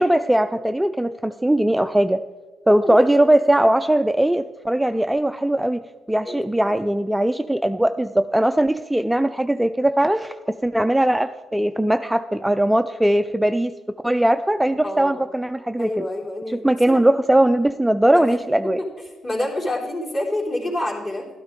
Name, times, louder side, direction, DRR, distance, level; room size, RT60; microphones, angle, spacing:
voice 1, 0.0-2.2 2.7-5.8 6.1-13.7 14.0-16.1 16.5-18.8, right 1 dB, 5° right, 9 dB, 0.3 m, -20 dB
voice 2, 2.8-3.3 6.2-6.7 14.8-15.2 15.8-17.0 18.1-18.4 18.8-18.9 19.2-21.3, left 1 dB, 40° left, -4 dB, 3.4 m, -28 dB
12.0 x 12.0 x 3.6 m, 1.3 s
cardioid pair, 90°, 0 cm